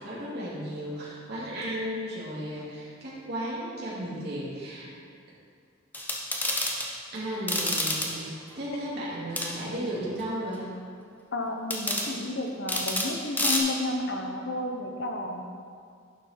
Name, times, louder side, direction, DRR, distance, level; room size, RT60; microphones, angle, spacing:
voice 1, 0.0-4.9 6.6-6.9 7.1-10.7, equal, 55° right, -8 dB, 2.4 m, -35 dB
sound 1, 5.9-6.9 7.5-8.1 9.4-9.5 11.7-12.1 12.7-13.1 13.4-13.6, left 1 dB, 10° left, 1.0 m, -28 dB
voice 2, 11.3-15.5, left 2 dB, 60° left, 3 dB, 0.9 m, -31 dB
11.0 x 6.2 x 4.3 m, 2.2 s
head